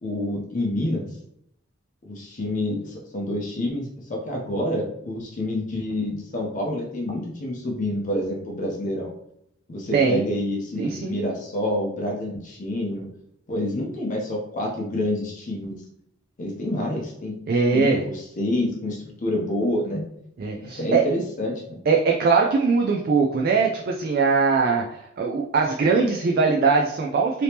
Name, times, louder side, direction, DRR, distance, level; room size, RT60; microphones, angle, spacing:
voice 1, 0.0-1.1 2.0-9.1 9.7-13.1 13.5-15.8 16.4-17.4 17.7-20.1 20.6-21.8, left 1 dB, 40° left, -1 dB, 0.5 m, -28 dB
voice 2, 9.9-10.2 10.8-11.2 17.5-18.0 20.4-21.0 21.9-27.4, right 4 dB, 50° right, 1 dB, 0.3 m, -21 dB
3.4 x 2.8 x 2.8 m, 0.76 s
head